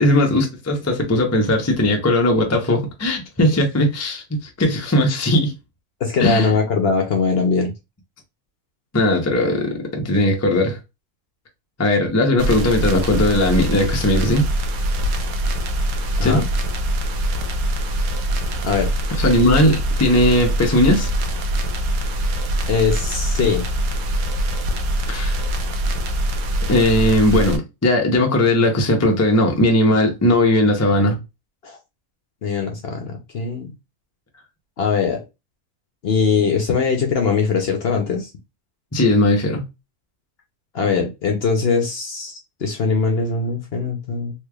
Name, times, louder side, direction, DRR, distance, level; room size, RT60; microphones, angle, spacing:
voice 1, 0.0-5.5 6.2-6.5 8.9-10.8 11.8-14.5 16.2-16.4 19.1-21.1 25.1-25.4 26.7-31.2 38.9-39.6, left 1 dB, 20° left, 0.4 m, -18 dB
voice 2, 6.0-7.7 16.2-16.5 18.6-18.9 22.7-23.6 31.6-31.8 32.4-33.7 34.8-35.2 36.0-38.3 40.7-44.3, left 5 dB, 60° left, 0.7 m, -21 dB
sound 1, 12.4-27.6, right 1 dB, 75° right, 1.1 m, -23 dB
3.2 x 3.2 x 2.2 m
omnidirectional pair, 1.5 m